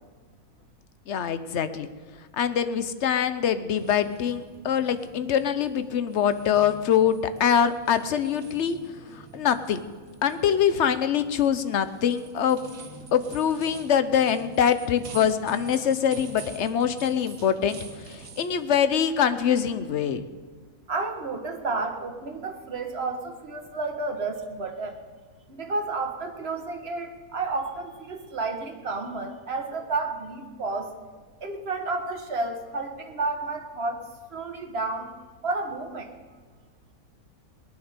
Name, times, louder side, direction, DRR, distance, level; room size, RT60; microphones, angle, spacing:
voice 1, 1.1-1.9 2.3-8.8 9.3-9.8 10.2-12.6 13.1-17.8 18.1-20.2, left 8 dB, 55° left, 12 dB, 1.0 m, -24 dB
sound 1, 3.7-18.8, right 4 dB, 65° right, 1.8 m, -46 dB
voice 2, 20.9-25.0 25.5-30.9 31.4-35.1 35.4-36.1, right 3 dB, 45° right, 4 dB, 1.7 m, -31 dB
19.0 x 10.5 x 6.7 m, 1.5 s
omnidirectional pair, 1.6 m